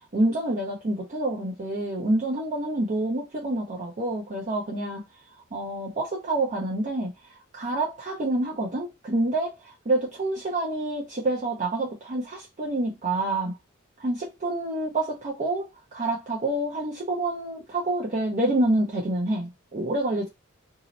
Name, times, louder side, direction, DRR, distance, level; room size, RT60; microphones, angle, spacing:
voice 1, 0.1-5.0 5.5-7.1 7.5-13.5 14.0-20.3, right 2 dB, 35° right, 0.6 m, -27 dB
2.8 x 2.0 x 3.9 m
head